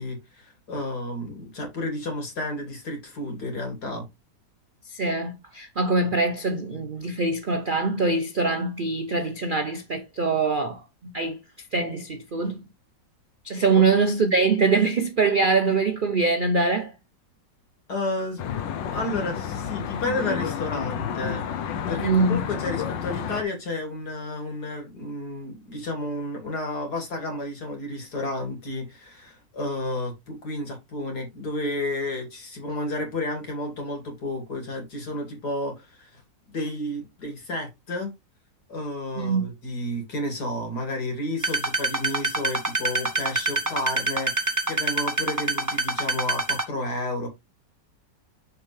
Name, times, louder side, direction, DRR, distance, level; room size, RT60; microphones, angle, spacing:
voice 1, 0.0-4.1 13.7-13.9 17.9-18.4 18.8-36.2 36.5-38.1 38.7-47.3, left 1 dB, 60° left, 3.0 m, -31 dB
voice 2, 4.9-11.4 11.7-12.6 13.4-16.9 22.0-22.4 39.2-39.5, right 4 dB, 55° right, 0.5 m, -23 dB
Traffic noise roadway noise, 18.4-23.4, left 8 dB, 90° left, 1.5 m, -30 dB
sound 1, 41.4-46.6, right 2 dB, 15° right, 0.7 m, -25 dB
6.7 x 5.5 x 3.3 m
omnidirectional pair, 1.9 m